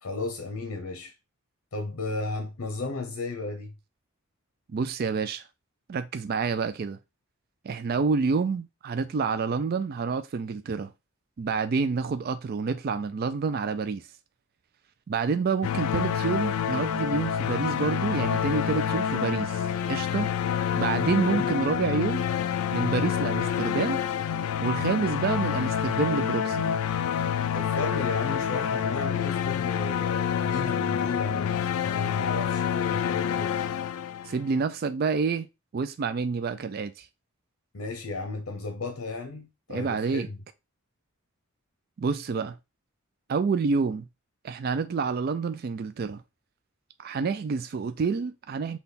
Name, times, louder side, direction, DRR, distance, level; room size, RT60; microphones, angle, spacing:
voice 1, 0.0-1.1 1.7-3.7 21.2-21.6 27.5-33.5 37.7-40.4, left 3 dB, 70° left, 0.8 m, -34 dB
voice 2, 4.7-5.4 5.9-7.0 7.6-10.9 11.4-14.1 15.1-20.3 20.7-22.3 22.7-24.0 24.6-26.7 34.2-35.5 35.7-37.1 39.7-40.3 42.0-42.6 43.3-44.0 44.4-46.2 47.0-48.8, right 5 dB, 45° right, 0.3 m, -28 dB
sound 1, 15.6-34.5, left 8 dB, 85° left, 0.4 m, -27 dB
5.6 x 2.3 x 4.0 m
head